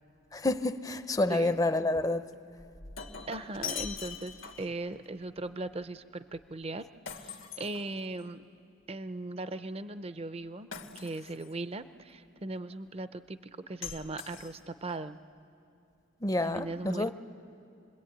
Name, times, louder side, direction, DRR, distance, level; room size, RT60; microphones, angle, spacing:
voice 1, 0.3-2.3 16.2-17.1, left 2 dB, 20° left, 0.6 m, -28 dB
Shatter, 2.6-4.8 7.1-8.3 10.7-11.5 13.8-14.9, left 7 dB, 90° left, 1.7 m, -42 dB
voice 2, 3.3-6.8 7.1-8.4 8.9-10.7 11.0-13.4 13.7-15.2 16.4-17.1, right 2 dB, 30° right, 0.6 m, -38 dB
27.5 x 21.5 x 9.0 m
head